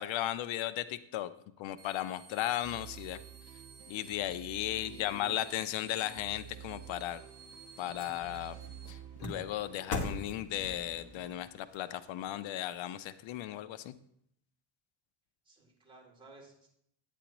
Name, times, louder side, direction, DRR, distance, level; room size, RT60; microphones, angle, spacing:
voice 1, 0.0-1.3 1.6-3.2 3.9-7.2 7.8-8.6 8.9-13.9, left 13 dB, 90° left, 13 dB, 0.6 m, -36 dB
sound 1, 1.8-8.9, right 5 dB, 35° right, 1.5 m, -57 dB
sound 2, 2.6-11.5, right 9 dB, 60° right, 1.1 m, -51 dB
voice 2, 4.7-5.3 15.5-16.7, right 1 dB, 10° right, -3 dB, 3.6 m, -54 dB
sound 3, 7.0-13.4 13.9-14.0, left 2 dB, 40° left, 1.8 m, -44 dB
10.0 x 9.3 x 3.0 m, 0.71 s
cardioid pair, 130°, 44 cm